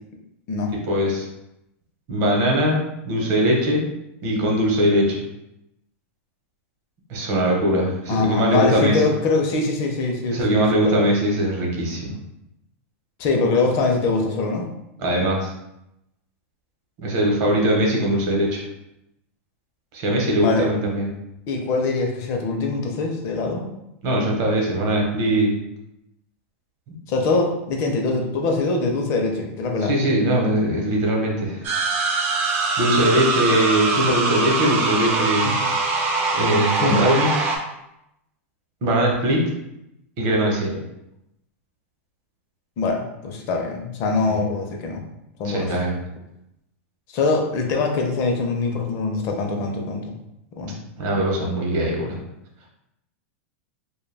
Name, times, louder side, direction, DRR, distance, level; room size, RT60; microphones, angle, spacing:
voice 1, 0.9-1.3 2.1-3.9 4.2-5.2 7.1-9.0 10.3-12.2 15.0-15.5 17.0-18.6 19.9-21.1 24.0-25.6 29.8-31.6 32.8-35.5 36.3-37.5 38.8-39.4 40.2-40.8 44.3-44.4 45.4-46.0 51.0-52.2, right 1 dB, 45° right, -1 dB, 0.8 m, -21 dB
voice 2, 8.1-11.0 13.2-14.7 20.4-20.7 21.5-23.7 27.1-29.9 35.4-35.6 36.8-37.0 42.8-45.0 45.4-45.8 47.1-50.1 50.6-50.8, left 3 dB, 40° left, 2 dB, 0.5 m, -23 dB
sound 1, 31.6-37.6, right 3 dB, 30° right, 0.4 m, -23 dB
2.2 x 2.1 x 3.3 m, 0.86 s
supercardioid pair, 135°, 7 cm